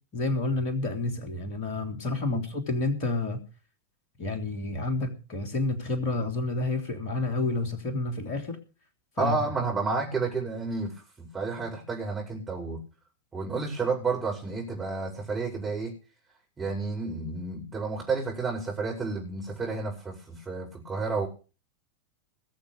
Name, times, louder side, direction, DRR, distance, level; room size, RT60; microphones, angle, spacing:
voice 1, 0.1-3.4 4.2-8.6 9.2-9.4, left 2 dB, 40° left, 6 dB, 3.4 m, -29 dB
voice 2, 9.2-12.8 13.3-15.9 16.6-21.3, right 4 dB, 15° right, -2 dB, 5.7 m, -31 dB
20.0 x 6.9 x 6.5 m, 0.35 s
figure-of-eight pair, 90°, 0 cm